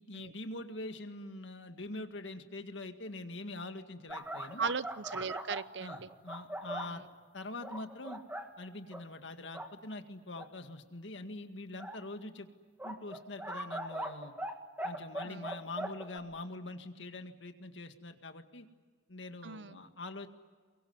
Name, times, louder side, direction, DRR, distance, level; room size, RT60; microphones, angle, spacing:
voice 1, 0.0-4.6 5.8-7.0 7.3-8.2 8.6-12.5 12.8-14.3 14.8-18.7 19.1-20.3, left 2 dB, 80° left, 7 dB, 1.9 m, -44 dB
sound 1, 4.1-7.0 7.6-8.5 8.9-9.0 9.4-9.7 10.4-10.5 11.8-12.0 12.8-14.5 14.8-16.2, right 1 dB, 10° right, 2.1 m, -40 dB
voice 2, 4.6-6.1 6.8-7.0 15.2-15.5 19.4-19.8, right 5 dB, 70° right, 16 dB, 0.8 m, -38 dB
23.5 x 23.0 x 9.7 m, 1.5 s
head